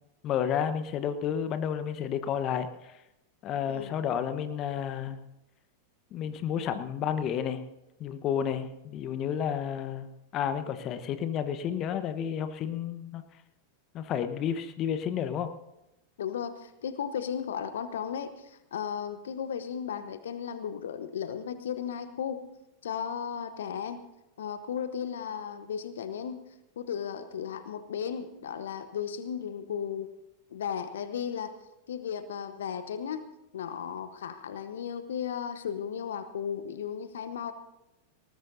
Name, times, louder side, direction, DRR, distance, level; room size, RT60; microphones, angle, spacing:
voice 1, 0.2-2.7 3.4-5.2 6.1-7.6 8.0-10.1 10.3-13.2 13.9-15.5, left 8 dB, 35° left, 10 dB, 1.1 m, -31 dB
voice 2, 16.2-22.4 22.8-24.0 24.4-26.4 26.8-30.1 30.5-31.6 31.9-33.3 33.5-37.5, left 8 dB, 70° left, 11 dB, 1.0 m, -35 dB
20.0 x 19.0 x 2.7 m, 0.92 s
figure-of-eight pair, 90°, 0 cm